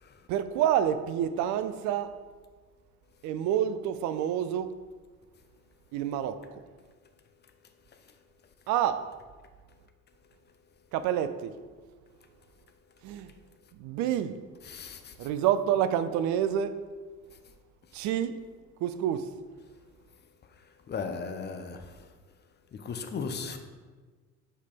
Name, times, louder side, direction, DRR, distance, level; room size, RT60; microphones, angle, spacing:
voice 1, 0.3-2.2 3.2-4.7 5.9-6.6 8.7-9.1 10.9-11.5 13.0-13.3 13.8-14.4 15.2-16.8 17.9-18.4 18.8-19.3, right 10 dB, 40° right, 0.4 m, -28 dB
voice 2, 14.6-15.1 20.9-22.1 22.7-23.6, left 5 dB, 25° left, 0.6 m, -36 dB
7.3 x 4.2 x 3.5 m
figure-of-eight pair, 55°, 45 cm